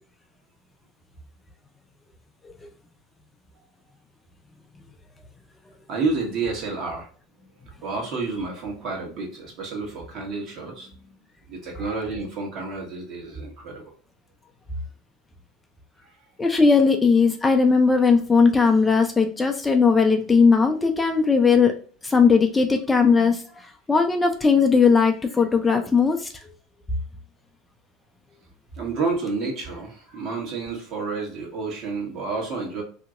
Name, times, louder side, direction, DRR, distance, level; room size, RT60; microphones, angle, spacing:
voice 1, 5.9-7.1 7.4-7.5 7.8-11.1 11.5-13.8 28.7-32.8, right 4 dB, 55° right, 0 dB, 1.3 m, -30 dB
voice 2, 16.4-21.7 22.0-23.4 23.9-26.3, left 5 dB, 15° left, 5 dB, 0.4 m, -18 dB
2.8 x 2.8 x 2.4 m, 0.42 s
supercardioid pair, 105°, 0 cm